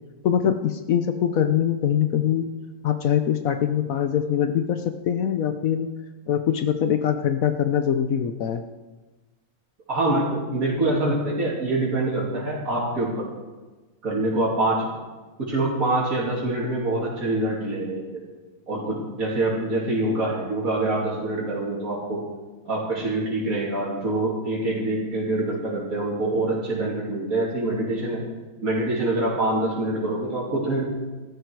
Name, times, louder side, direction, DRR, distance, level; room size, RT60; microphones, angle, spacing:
voice 1, 0.2-2.5 2.8-5.9 6.3-8.6, left 9 dB, 70° left, 8 dB, 1.2 m, -23 dB
voice 2, 9.9-13.2 14.0-14.9 15.5-18.2 18.7-22.2 22.7-28.2 28.6-30.8, right 2 dB, 70° right, -7 dB, 3.5 m, -25 dB
15.0 x 13.0 x 4.7 m, 1.2 s
omnidirectional pair, 1.6 m